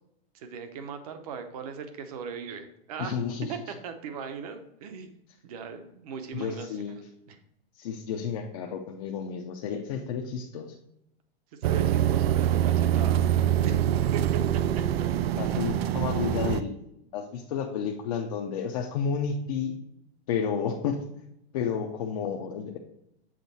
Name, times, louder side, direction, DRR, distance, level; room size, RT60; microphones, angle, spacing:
voice 1, 0.3-3.1 3.5-5.1 5.4-7.4 11.6-13.3 13.6-13.8 14.1-15.0, right 6 dB, 35° right, 8 dB, 0.7 m, -39 dB
voice 2, 3.0-3.5 6.3-7.0 7.8-10.7 15.4-16.7 17.1-19.8 20.3-21.0 21.5-22.8, left 6 dB, 35° left, 1 dB, 0.5 m, -31 dB
sound 1, 11.6-16.6, right 11 dB, 75° right, 0.4 m, -24 dB
7.4 x 3.6 x 4.1 m, 0.79 s
supercardioid pair, 170°, 31 cm